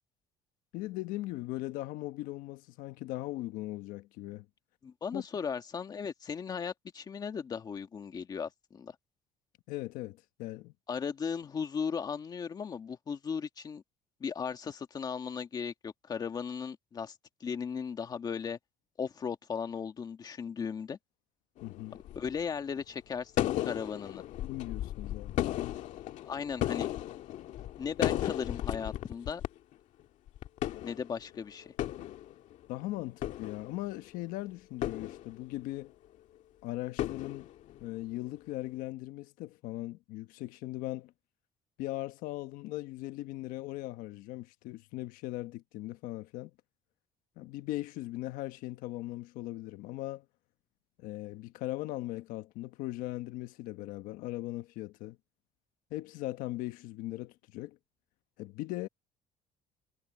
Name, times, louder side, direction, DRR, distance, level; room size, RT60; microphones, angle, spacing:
voice 1, 0.7-4.5 5.1-5.2 9.7-10.7 21.6-22.0 24.4-25.8 32.7-35.9 36.6-37.5 37.8-41.1 41.8-46.5 47.4-50.2 51.0-55.2 55.9-57.8 58.4-58.9, left 17 dB, 90° left, 1.2 m, -39 dB
voice 2, 4.8-8.9 10.9-13.8 14.2-17.1 17.4-18.6 19.0-21.0 22.1-24.2 26.2-26.9 27.8-29.4 30.8-31.7, left 6 dB, 30° left, 1.6 m, -37 dB
sound 1, 21.6-22.4 23.4-29.5 29.7-29.8 30.3-31.4 31.6-32.7 33.1-34.1 34.8-35.7 37.0-38.0, left 13 dB, 60° left, 1.7 m, -35 dB
cardioid pair, 155°, 14 cm